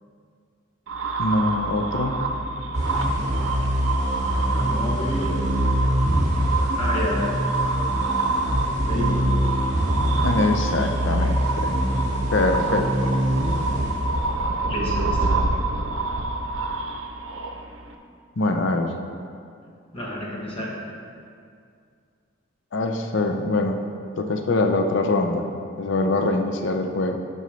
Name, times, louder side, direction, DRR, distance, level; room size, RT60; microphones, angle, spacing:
sound 1, 0.9-17.9, right 3 dB, 85° right, 0.7 m, -27 dB
voice 1, 1.2-2.2 10.2-11.8 12.3-13.2 18.4-18.9 22.7-23.8 24.2-25.5 25.8-27.2, left 2 dB, 65° left, 4 dB, 0.5 m, -23 dB
sound 2, 2.7-14.6, equal, 35° right, 1.6 m, -24 dB
voice 2, 4.3-5.4 6.8-7.3 8.9-9.3 14.7-15.3 19.9-20.7, left 1 dB, 25° left, -4 dB, 1.2 m, -30 dB
10.5 x 5.4 x 3.2 m, 2.3 s
head